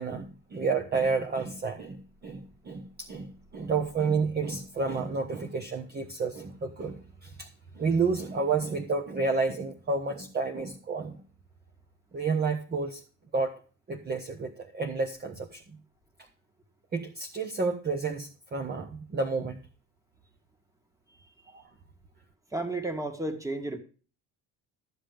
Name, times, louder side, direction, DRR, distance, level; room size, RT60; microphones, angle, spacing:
voice 1, 0.0-7.5 7.8-11.2 12.1-13.0 13.3-13.6 13.9-15.6 16.9-19.6, right 4 dB, 25° right, 4 dB, 1.2 m, -30 dB
voice 2, 22.5-23.8, right 2 dB, 10° right, 6 dB, 2.0 m, -32 dB
13.5 x 7.5 x 5.1 m, 0.38 s
cardioid pair, 135°, 38 cm